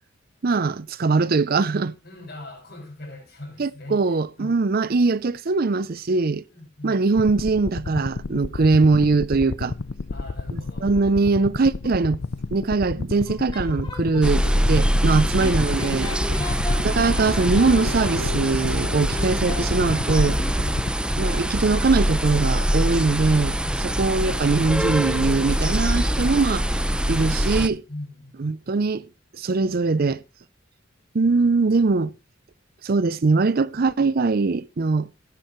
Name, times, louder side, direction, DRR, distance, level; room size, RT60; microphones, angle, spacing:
voice 1, 0.4-1.9 3.6-6.4 6.8-9.7 10.5-12.2 12.5-16.1 16.8-20.4 21.2-26.7 27.1-27.8 28.4-29.0 29.4-30.2 31.1-32.1 32.8-35.1, right 3 dB, 50° right, 0.5 m, -21 dB
voice 2, 2.0-4.6 6.5-7.0 10.1-10.9 15.2-15.3 16.3-16.7 20.5-20.9 27.9-28.5, left 1 dB, 55° left, 6.4 m, -40 dB
sound 1, 7.2-21.5, left 3 dB, 70° left, 0.6 m, -32 dB
sound 2, 13.2-14.6 15.4-20.8, left 2 dB, 25° left, 3.0 m, -37 dB
sound 3, 14.2-27.7, equal, 5° right, 0.6 m, -23 dB
17.5 x 10.0 x 3.1 m
head